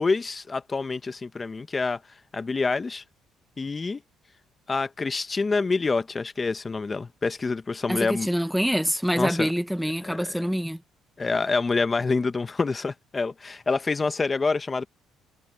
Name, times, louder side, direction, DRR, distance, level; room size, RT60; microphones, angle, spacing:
voice 1, 0.0-2.0 2.3-3.0 3.6-4.0 4.7-8.3 9.1-9.5 10.0-10.4 11.2-14.9, left 4 dB, 25° left, 1.0 m, -27 dB
voice 2, 7.9-10.8, equal, ahead, 1.0 m, -26 dB
cardioid pair, 115°, 0 cm